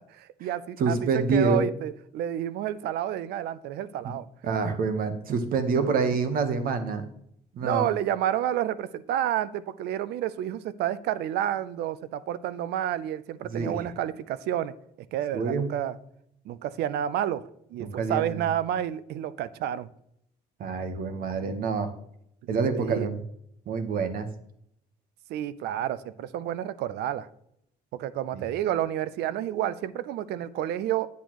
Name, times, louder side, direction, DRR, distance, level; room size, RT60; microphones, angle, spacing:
voice 1, 0.1-4.3 7.6-14.7 15.1-16.0 16.5-19.9 22.7-23.1 25.3-27.3 27.9-31.1, right 11 dB, 75° right, 16 dB, 0.5 m, -30 dB
voice 2, 0.8-1.7 4.0-4.1 4.4-7.1 7.5-7.9 13.5-13.9 15.3-15.7 17.8-18.4 20.6-21.9 22.5-23.2 23.7-24.3 28.3-28.4, right 4 dB, 60° right, 9 dB, 1.2 m, -27 dB
8.3 x 8.2 x 3.0 m, 0.73 s
cardioid pair, 110°, 17 cm